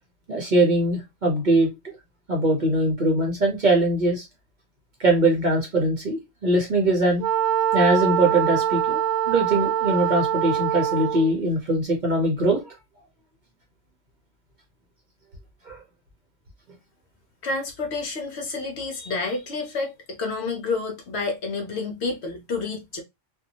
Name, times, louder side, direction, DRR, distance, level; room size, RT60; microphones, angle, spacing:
voice 1, 0.3-1.7 2.3-4.3 5.0-7.3 7.7-9.0 9.3-12.7 15.7-15.8, right 1 dB, 45° right, 0.7 m, -21 dB
Wind instrument woodwind instrument, 7.2-11.4, right 10 dB, 80° right, 1.0 m, -24 dB
voice 2, 17.4-23.0, left 3 dB, 65° left, 0.9 m, -29 dB
2.6 x 2.3 x 2.6 m
omnidirectional pair, 1.3 m